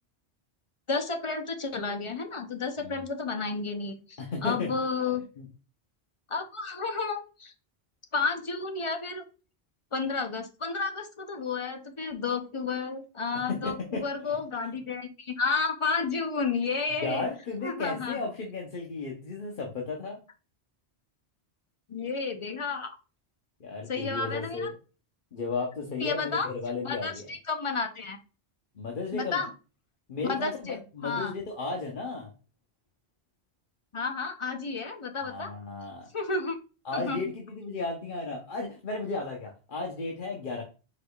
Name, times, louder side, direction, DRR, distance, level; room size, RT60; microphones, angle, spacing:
voice 1, 0.9-5.2 6.3-7.5 8.1-9.2 9.9-17.3 17.6-18.3 21.9-23.0 23.9-24.7 26.0-26.5 26.8-28.2 29.1-29.5 30.3-31.4 33.9-35.5 36.1-36.6 36.9-37.2, left 4 dB, 35° left, 6 dB, 0.6 m, -31 dB
voice 2, 4.2-4.7 5.0-5.4 13.5-14.4 17.0-20.2 23.6-24.7 25.3-27.3 28.7-29.4 30.1-32.3 35.2-36.1 36.8-40.6, left 3 dB, 55° left, 0 dB, 1.0 m, -34 dB
4.9 x 4.1 x 2.3 m, 0.34 s
omnidirectional pair, 1.1 m